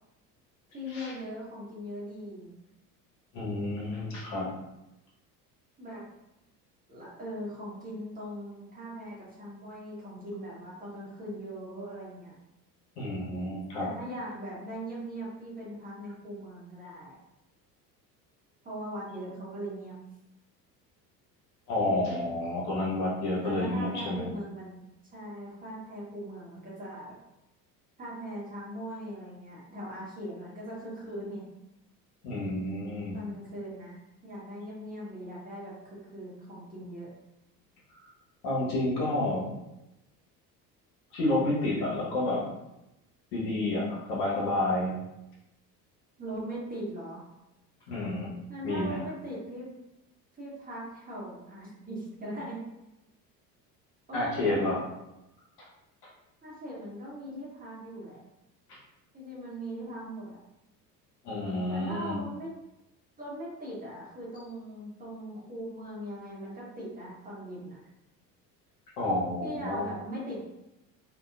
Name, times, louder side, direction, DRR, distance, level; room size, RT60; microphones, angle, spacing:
voice 1, 0.7-2.5 5.8-6.0 6.9-12.3 13.8-17.2 18.6-19.9 23.4-24.8 25.1-27.2 28.0-31.4 33.1-34.0 34.2-37.1 46.2-47.2 48.5-49.7 50.4-52.6 54.1-54.7 56.4-58.2 59.1-60.4 61.7-62.5 63.2-67.8 69.4-70.4, equal, 15° right, -6 dB, 0.9 m, -40 dB
voice 2, 3.3-4.5 13.0-13.9 21.7-24.3 32.2-33.2 38.4-39.5 41.1-42.4 43.3-44.9 47.9-48.3 48.6-49.0 54.1-54.8 55.6-55.7 58.7-58.8 61.2-62.2 69.0-69.9, left 1 dB, 65° left, -5 dB, 1.1 m, -30 dB
2.7 x 2.3 x 2.3 m, 0.91 s
figure-of-eight pair, 65°, 49 cm